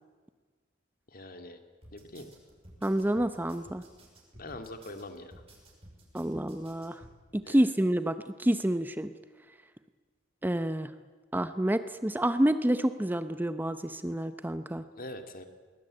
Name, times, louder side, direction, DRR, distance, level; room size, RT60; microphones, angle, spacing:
voice 1, 1.1-1.6 1.9-2.3 4.3-5.3 7.5-7.6 15.0-15.4, left 1 dB, 50° left, 7 dB, 2.2 m, -43 dB
sound 1, 1.8-7.1, right 1 dB, 30° right, 5.9 m, -54 dB
voice 2, 2.8-3.8 6.1-7.0 7.3-9.1 10.4-10.9 11.3-14.8, right 1 dB, 10° right, 11 dB, 0.7 m, -28 dB
21.5 x 20.0 x 8.8 m, 1.4 s
head